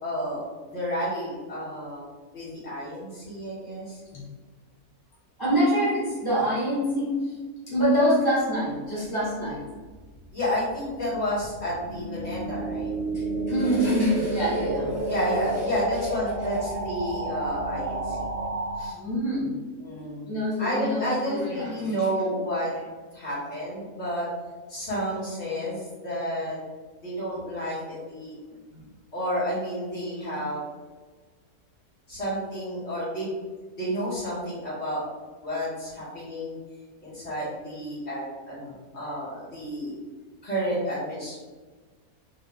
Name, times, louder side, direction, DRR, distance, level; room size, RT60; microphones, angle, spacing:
voice 1, 0.0-2.1 2.3-4.0 10.3-12.9 15.1-18.3 18.8-19.0 19.8-22.7 23.1-24.3 24.7-26.6 27.0-28.4 29.1-30.6 32.1-33.4 33.8-35.0 35.4-36.6 37.0-40.0 40.4-41.4, equal, 45° left, -9 dB, 2.0 m, -30 dB
voice 2, 5.4-7.3 7.7-9.8 13.1-15.1 18.9-19.6 20.3-21.9, equal, 15° right, -9 dB, 0.9 m, -26 dB
sound 1, 9.6-18.9, right 2 dB, 80° right, 0.5 m, -31 dB
4.0 x 2.8 x 3.5 m, 1.3 s
omnidirectional pair, 1.7 m